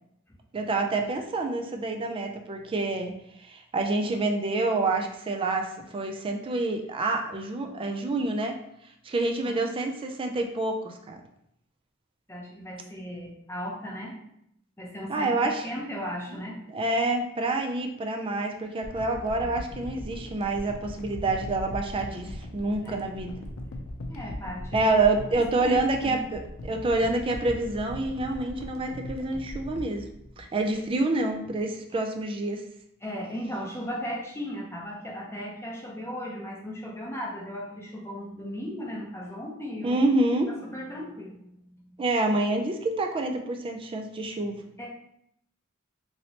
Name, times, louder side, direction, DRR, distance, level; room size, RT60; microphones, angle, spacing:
voice 1, 0.5-8.6 9.0-11.2 15.1-15.7 16.7-23.4 24.7-30.1 30.4-32.6 39.8-40.5 42.0-44.6, right 2 dB, 25° right, 4 dB, 0.3 m, -27 dB
voice 2, 12.3-14.1 14.8-16.6 22.8-23.0 24.1-24.9 25.3-26.2 33.0-40.0 40.6-41.4 41.7-42.0 44.8-44.9, equal, 10° left, -3 dB, 0.7 m, -36 dB
sound 1, 18.8-31.0 31.6-31.7, left 1 dB, 80° left, 0.5 m, -39 dB
3.1 x 2.8 x 2.8 m, 0.76 s
head